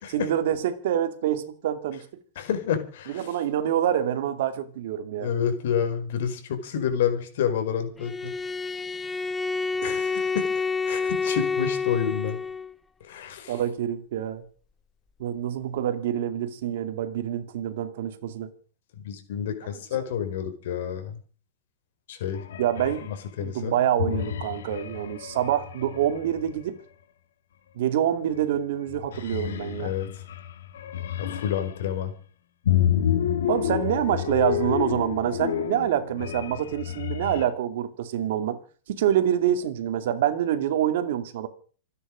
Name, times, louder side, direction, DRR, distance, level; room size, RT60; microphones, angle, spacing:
voice 1, 0.1-2.1 3.1-5.3 13.5-14.4 15.2-18.5 22.6-23.1 23.4-26.7 27.7-29.9 33.5-38.6 38.9-41.5, right 10 dB, 65° right, 2.6 m, -26 dB
voice 2, 2.3-3.3 5.2-8.3 9.8-12.4 13.0-13.6 19.0-21.2 22.1-22.4 23.1-23.8 29.8-30.2 31.2-32.1, left 8 dB, 65° left, 4.9 m, -29 dB
Bowed string instrument, 8.0-12.7, left 4 dB, 10° left, 0.7 m, -28 dB
sound 1, 22.3-23.2 24.0-26.6 28.3-28.6 28.9-31.9 32.6-37.4, left 10 dB, 90° left, 2.3 m, -29 dB
27.0 x 10.0 x 5.2 m
supercardioid pair, 160°, 0 cm